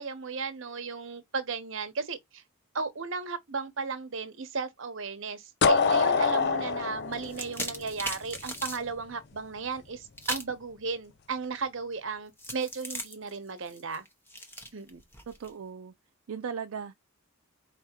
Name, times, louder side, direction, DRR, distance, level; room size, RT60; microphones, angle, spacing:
voice 1, 0.0-2.4 2.7-14.0 14.7-15.0, right 4 dB, 60° right, 0.9 m, -35 dB
sound 1, 5.6-8.4, left 5 dB, 50° left, 0.5 m, -25 dB
sound 2, 7.1-8.8 10.2-10.6 12.4-15.5, equal, 10° left, 0.7 m, -38 dB
voice 2, 15.3-15.9 16.3-16.9, right 6 dB, 75° right, 0.4 m, -37 dB
4.7 x 3.4 x 2.9 m
head